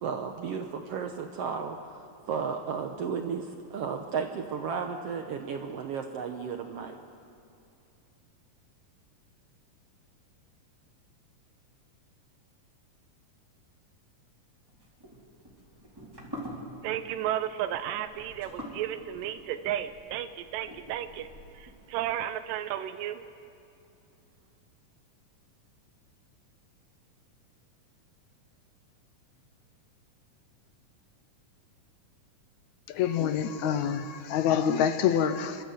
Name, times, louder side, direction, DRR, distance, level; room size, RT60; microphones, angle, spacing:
voice 1, 0.0-7.0, right 6 dB, 70° right, 5 dB, 1.5 m, -34 dB
sound 1, 14.7-21.7, equal, 5° right, 3.7 m, -45 dB
voice 2, 16.8-21.3 21.5-23.3, right 11 dB, 90° right, 10 dB, 2.3 m, -33 dB
voice 3, 32.9-35.6, left 8 dB, 75° left, 10 dB, 1.9 m, -26 dB
28.0 x 13.0 x 7.9 m, 2.6 s
omnidirectional pair, 3.8 m